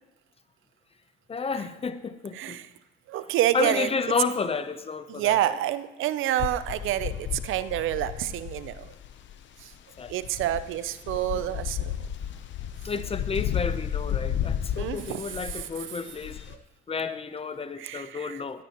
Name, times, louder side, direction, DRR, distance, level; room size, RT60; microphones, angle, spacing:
voice 1, 1.3-2.6 3.5-5.6 10.0-10.1 11.3-11.4 12.8-16.5 16.9-18.6, left 5 dB, 30° left, 12 dB, 0.8 m, -31 dB
voice 2, 3.1-3.9 5.1-8.9 9.6-9.7 10.1-12.0 14.7-15.7 17.8-18.4, right 13 dB, 75° right, 14 dB, 0.6 m, -28 dB
sound 1, 6.4-16.6, left 10 dB, 65° left, 0.8 m, -33 dB
15.0 x 14.5 x 3.0 m, 1.1 s
cardioid pair, 95°, 21 cm